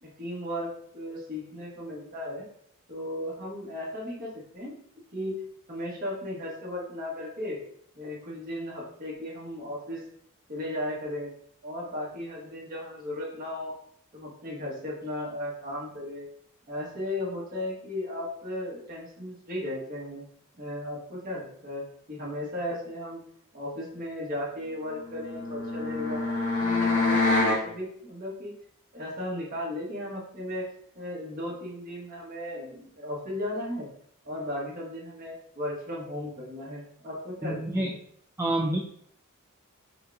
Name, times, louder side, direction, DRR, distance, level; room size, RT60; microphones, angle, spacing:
voice 1, 0.0-2.4 2.9-4.8 5.1-5.4 5.7-7.6 7.9-10.0 10.5-11.3 11.6-13.8 14.1-16.2 16.7-20.2 20.6-23.2 23.5-26.2 26.6-28.5 28.9-30.7 30.9-33.9 34.2-38.0, left 1 dB, 40° right, -5 dB, 1.4 m, -35 dB
sound 1, 25.0-27.6, left 3 dB, 85° left, 1.1 m, -26 dB
voice 2, 37.4-37.9 38.4-38.8, right 1 dB, 10° right, -1 dB, 0.3 m, -27 dB
5.3 x 2.4 x 2.6 m, 0.65 s
head